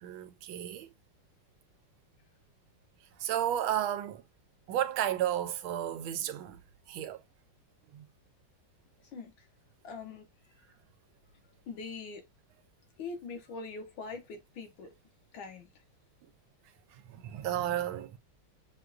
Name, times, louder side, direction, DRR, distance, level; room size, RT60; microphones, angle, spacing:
voice 1, 0.0-0.9 3.2-4.2 4.7-6.6 6.9-7.2 7.9-8.0 17.1-18.2, right 11 dB, 90° right, 1.4 m, -32 dB
voice 2, 9.1-9.5 9.8-10.3 11.7-12.2 13.0-14.9 15.3-15.8, left 4 dB, 75° left, 1.9 m, -42 dB
6.3 x 2.4 x 2.5 m
omnidirectional pair, 2.2 m